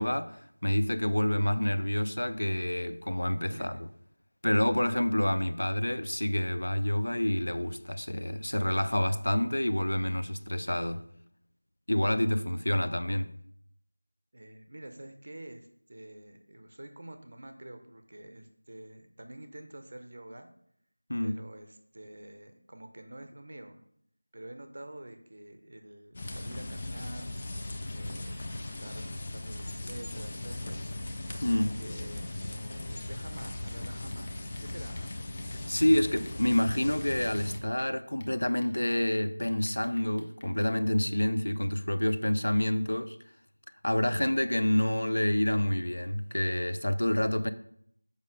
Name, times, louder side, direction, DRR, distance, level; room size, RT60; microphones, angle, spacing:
voice 1, 0.0-3.8 4.4-11.1 11.9-13.3 21.1-21.4 31.4-31.8 35.7-43.2 43.8-47.5, left 1 dB, 60° left, 0.6 m, -28 dB
voice 2, 3.5-3.8 14.3-20.5 21.2-23.8 24.3-27.3 27.9-30.8 31.4-35.1, right 1 dB, 30° right, 0.6 m, -47 dB
sound 1, 26.1-37.6, left 1 dB, 15° left, 0.4 m, -38 dB
sound 2, 33.4-36.5 36.8-37.9 38.2-40.7, left 1 dB, 35° left, 1.0 m, -55 dB
6.5 x 5.3 x 5.0 m
figure-of-eight pair, 180°, 0 cm